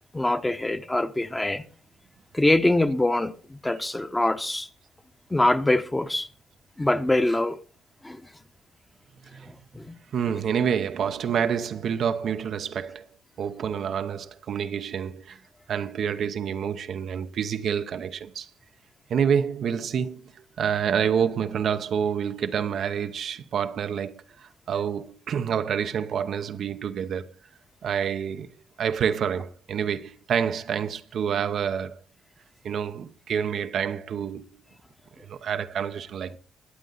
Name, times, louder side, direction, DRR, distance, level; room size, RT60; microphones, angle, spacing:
voice 1, 0.1-1.6 2.3-4.7 5.3-6.3 6.8-7.6 8.0-8.2 9.7-9.9, left 1 dB, 15° left, 1.2 m, -24 dB
voice 2, 10.1-13.0 13.4-15.4 15.7-18.5 19.1-20.2 20.6-27.3 27.8-32.0 32.6-34.4 35.3-36.4, right 7 dB, 65° right, 0.9 m, -28 dB
21.0 x 8.2 x 4.0 m
cardioid pair, 90°, 0 cm